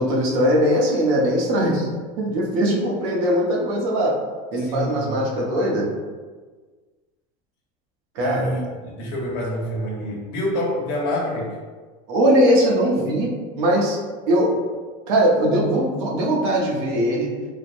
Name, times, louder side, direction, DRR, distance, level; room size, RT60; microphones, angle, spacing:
voice 1, 0.0-1.9 2.2-4.1 4.5-5.9 8.1-8.5 12.1-14.0 14.3-14.5 15.1-17.3, equal, 70° right, -2 dB, 0.8 m, -20 dB
voice 2, 4.6-5.2 8.2-11.5, equal, 60° left, -4 dB, 1.0 m, -27 dB
3.2 x 2.0 x 2.5 m, 1.4 s
supercardioid pair, 145°, 19 cm